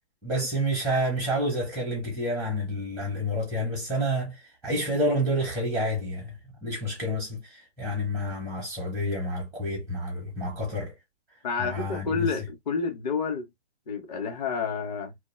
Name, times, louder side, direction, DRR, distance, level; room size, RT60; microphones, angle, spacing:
voice 1, 0.2-10.9 11.6-12.3, equal, ahead, 0.6 m, -29 dB
voice 2, 11.4-13.5 13.9-15.1, left 5 dB, 40° left, 0.9 m, -29 dB
2.4 x 2.3 x 3.0 m
hypercardioid pair, 140°, 34 cm